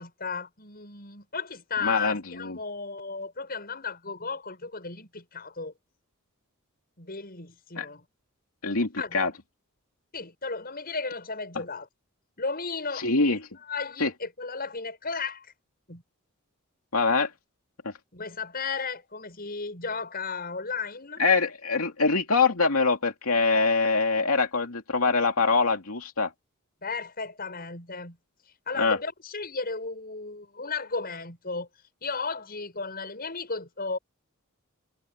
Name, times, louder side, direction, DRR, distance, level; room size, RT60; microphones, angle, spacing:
voice 1, 0.0-5.7 7.0-8.0 9.0-9.2 10.1-11.9 12.4-15.5 15.9-16.0 18.1-21.2 26.8-28.2 28.7-31.7 32.0-34.0, left 4 dB, 45° left, 7.8 m, -34 dB
voice 2, 1.8-2.6 7.8-7.9 8.6-8.9 9.1-9.3 12.9-13.4 14.0-14.1 16.9-17.3 21.2-26.3 28.8-29.0, left 4 dB, 90° left, 2.6 m, -24 dB
head